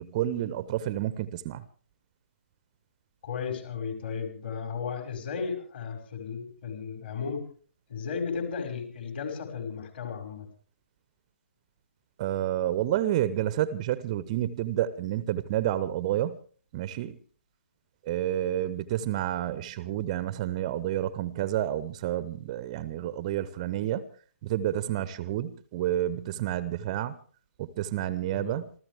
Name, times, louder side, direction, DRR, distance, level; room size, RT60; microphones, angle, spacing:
voice 1, 0.0-1.6 12.2-16.4 16.7-17.2 18.0-24.0 24.4-27.2 27.6-28.7, right 12 dB, 25° right, 0.8 m, -29 dB
voice 2, 3.2-7.4 7.9-10.5 28.3-28.6, left 6 dB, 45° left, 5.5 m, -34 dB
27.5 x 14.5 x 3.4 m
figure-of-eight pair, 135°, 8 cm